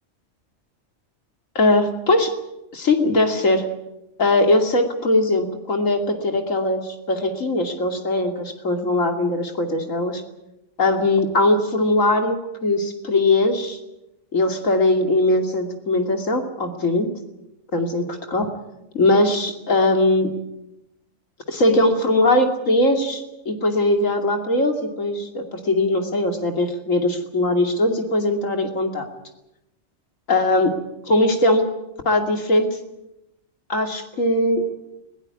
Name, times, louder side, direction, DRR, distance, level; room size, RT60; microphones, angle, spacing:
voice 1, 1.5-2.3 2.7-3.7 4.2-10.2 10.8-13.8 14.3-17.1 17.7-18.5 18.9-20.3 21.5-29.1 30.3-30.7 31.0-31.7 32.0-32.8 33.7-34.6, left 2 dB, 75° left, 5 dB, 3.0 m, -20 dB
20.5 x 17.5 x 9.6 m, 0.91 s
omnidirectional pair, 1.4 m